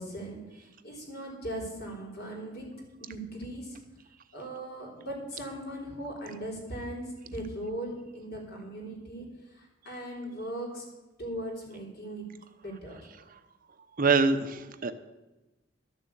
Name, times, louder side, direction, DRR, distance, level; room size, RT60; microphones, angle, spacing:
voice 1, 0.0-2.7 3.0-3.8 4.3-10.8 11.2-12.3 12.6-13.0, right 1 dB, 55° left, -1 dB, 3.9 m, -39 dB
voice 2, 14.0-14.9, right 4 dB, 45° right, 9 dB, 0.8 m, -24 dB
12.5 x 7.1 x 8.3 m, 1.1 s
head